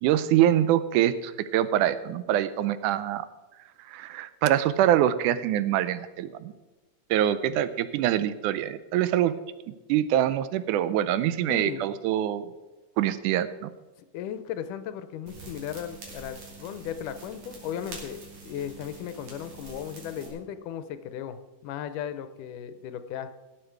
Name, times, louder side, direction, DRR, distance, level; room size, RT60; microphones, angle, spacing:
voice 1, 0.0-3.3 3.9-6.5 7.1-9.3 9.9-12.5 13.0-13.7, right 12 dB, 85° right, 14 dB, 2.1 m, -24 dB
voice 2, 11.5-11.9 14.1-23.3, left 9 dB, 85° left, 11 dB, 2.3 m, -36 dB
sound 1, 15.3-20.3, right 3 dB, 65° right, 3.9 m, -45 dB
18.0 x 7.4 x 4.6 m, 1.2 s
omnidirectional pair, 3.6 m